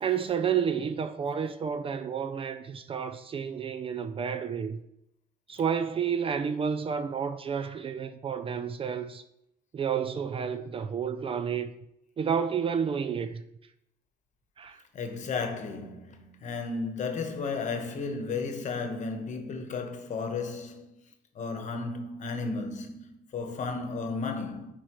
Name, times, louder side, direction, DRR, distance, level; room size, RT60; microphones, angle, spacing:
voice 1, 0.0-4.8 5.5-9.2 9.7-11.7 12.2-13.4 14.6-14.8, right 7 dB, 35° right, 0.4 m, -30 dB
voice 2, 14.9-21.0 21.3-24.7, left 4 dB, 45° left, 1.1 m, -34 dB
9.4 x 4.5 x 3.0 m
cardioid pair, 110°, 17 cm